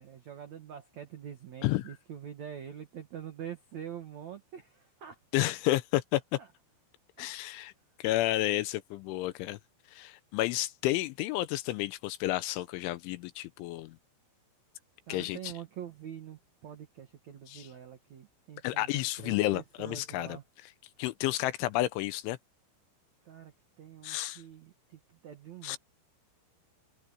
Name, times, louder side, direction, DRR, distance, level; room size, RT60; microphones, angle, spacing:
voice 1, 0.0-5.4 6.4-6.5 7.2-7.4 15.1-20.4 23.2-25.8, right 9 dB, 75° right, 1.6 m, -45 dB
voice 2, 1.6-1.9 5.3-6.4 7.2-7.7 8.0-9.6 9.9-14.0 15.1-15.5 17.5-17.7 18.6-20.4 21.0-22.4 24.0-24.4 25.6-25.8, left 16 dB, 80° left, 3.0 m, -31 dB
omnidirectional pair, 5.8 m